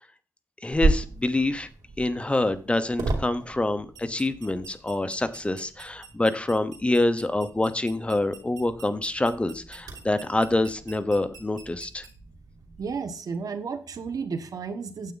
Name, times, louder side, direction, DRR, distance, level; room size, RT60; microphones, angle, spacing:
voice 1, 0.6-1.7 2.0-12.1, left 2 dB, 20° left, 11 dB, 0.9 m, -26 dB
sound 1, 0.7-13.0, right 3 dB, 90° right, 2.7 m, -35 dB
voice 2, 12.8-15.1, right 5 dB, 70° right, 9 dB, 1.3 m, -32 dB
9.1 x 8.3 x 4.0 m, 0.40 s
wide cardioid pair, 90°, 6 cm